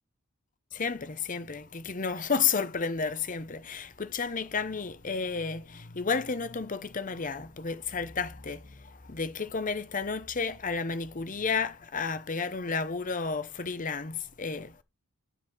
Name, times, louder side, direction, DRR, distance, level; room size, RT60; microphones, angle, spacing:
voice 1, 0.7-14.8, left 5 dB, 35° left, 0.8 m, -32 dB
10.0 x 4.2 x 6.6 m
head